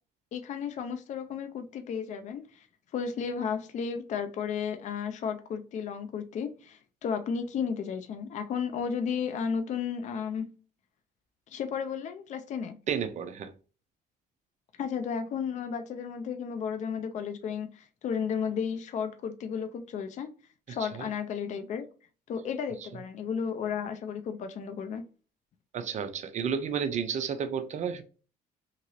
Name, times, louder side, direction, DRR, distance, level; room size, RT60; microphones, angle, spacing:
voice 1, 0.3-2.7 2.9-10.5 11.5-12.8 14.8-20.3 20.7-21.9 22.3-25.0, left 6 dB, 45° left, 0.4 m, -33 dB
voice 2, 12.9-13.5 20.7-21.1 25.7-28.0, right 7 dB, 45° right, 0.5 m, -32 dB
2.9 x 2.8 x 2.6 m
cardioid pair, 110°, 17 cm